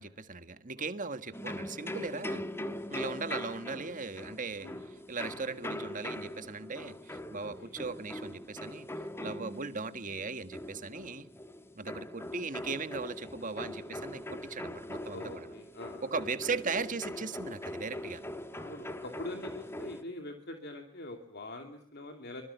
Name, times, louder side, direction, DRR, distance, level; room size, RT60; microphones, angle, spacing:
voice 1, 0.0-2.4 2.9-8.9 9.2-11.3 11.7-15.5 16.1-18.2, right 4 dB, 40° right, 10 dB, 1.6 m, -38 dB
sound 1, 1.3-20.0, left 1 dB, 10° left, 1.5 m, -41 dB
voice 2, 7.3-7.7 15.1-16.1 18.5-22.4, left 1 dB, 50° left, 4 dB, 2.7 m, -44 dB
25.0 x 21.0 x 8.2 m, 0.69 s
head